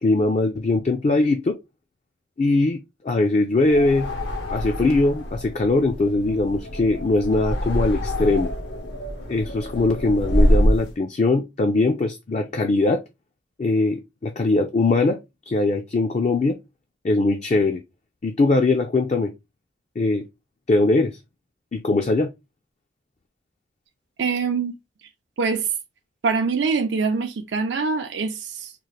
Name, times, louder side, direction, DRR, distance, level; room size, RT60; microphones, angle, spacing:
voice 1, 0.0-1.6 2.4-4.1 4.5-8.5 9.3-13.0 13.6-15.2 15.5-16.6 17.0-17.8 18.2-19.3 20.0-20.2 20.7-21.2 21.7-22.3, left 2 dB, 35° left, 0.4 m, -21 dB
sound 1, 3.6-10.9, equal, 75° left, 1.0 m, -25 dB
voice 2, 24.2-24.7 25.0-25.1 25.4-25.7 26.2-28.7, right 5 dB, 75° right, 0.5 m, -24 dB
3.7 x 2.4 x 3.2 m
head